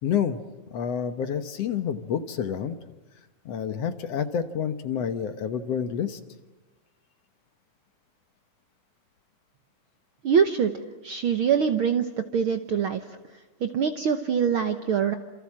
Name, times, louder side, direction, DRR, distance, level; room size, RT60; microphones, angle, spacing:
voice 1, 0.0-0.4 0.7-2.8 3.5-6.2, left 8 dB, 60° left, 10 dB, 2.0 m, -28 dB
voice 2, 10.2-10.7 11.0-13.0 13.6-15.1, right 7 dB, 60° right, 8 dB, 1.4 m, -24 dB
28.0 x 28.0 x 7.5 m, 1.1 s
omnidirectional pair, 3.6 m